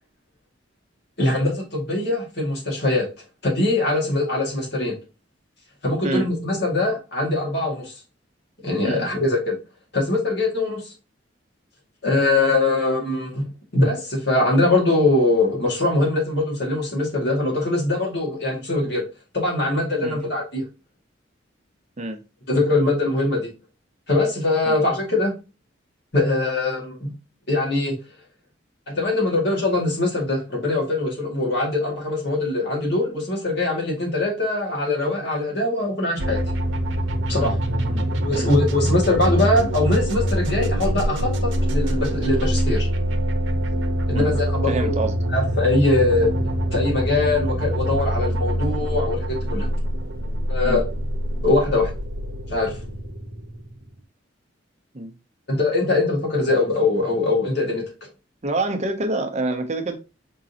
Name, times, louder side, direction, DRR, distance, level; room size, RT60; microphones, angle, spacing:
voice 1, 1.2-3.1 3.4-5.0 5.8-7.9 8.6-9.5 9.9-10.9 12.0-13.4 13.7-19.0 19.3-20.6 22.5-23.5 24.1-25.3 26.1-27.1 27.5-27.9 28.9-36.4 37.3-37.5 38.2-42.9 44.1-44.9 45.3-46.3 46.7-49.7 50.5-50.8 51.4-51.9 52.5-52.8 55.5-57.9, left 2 dB, 60° left, 2.1 m, -22 dB
sound 1, 36.2-53.9, equal, 85° right, 0.8 m, -24 dB
voice 2, 44.7-45.2 50.6-50.8 54.9-55.1 58.4-60.0, right 2 dB, 35° right, 0.7 m, -26 dB
5.0 x 3.7 x 2.8 m
head